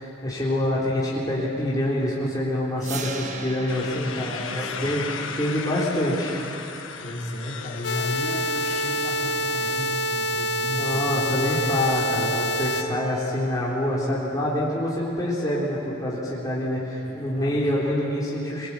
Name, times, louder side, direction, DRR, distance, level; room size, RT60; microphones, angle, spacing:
voice 1, 0.0-6.4 10.8-18.7, left 1 dB, 20° left, -7 dB, 3.6 m, -26 dB
sound 1, 2.8-8.8, right 4 dB, 40° right, 1.5 m, -41 dB
sound 2, 3.7-9.8, left 6 dB, 85° left, 1.5 m, -37 dB
voice 2, 4.0-5.0 7.0-11.7 17.0-17.8, equal, 40° left, -3 dB, 4.0 m, -34 dB
sound 3, 7.8-12.8, left 1 dB, 60° left, 1.1 m, -26 dB
23.5 x 21.5 x 8.5 m, 3.0 s
head